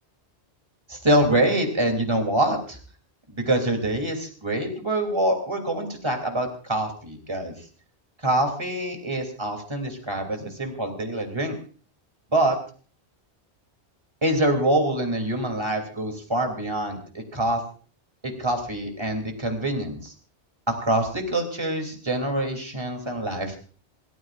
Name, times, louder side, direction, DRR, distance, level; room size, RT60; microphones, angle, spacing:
voice 1, 0.9-2.8 3.3-7.6 8.2-11.6 12.3-12.6 14.2-17.6 18.2-20.1 20.7-23.6, right 1 dB, 25° right, 4 dB, 2.9 m, -25 dB
27.5 x 14.5 x 2.5 m, 0.40 s
omnidirectional pair, 1.1 m